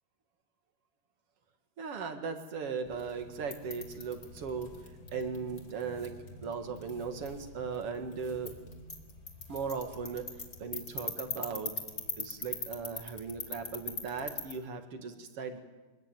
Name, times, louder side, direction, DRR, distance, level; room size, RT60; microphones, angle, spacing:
voice 1, 1.8-4.7 5.1-6.1 6.4-8.5 9.5-10.3 10.6-11.7 12.2-15.6, right 5 dB, 50° right, 7 dB, 2.0 m, -37 dB
sound 1, 2.8-14.5, left 3 dB, 25° left, 2.7 m, -43 dB
24.5 x 20.5 x 9.2 m, 1.2 s
omnidirectional pair, 4.8 m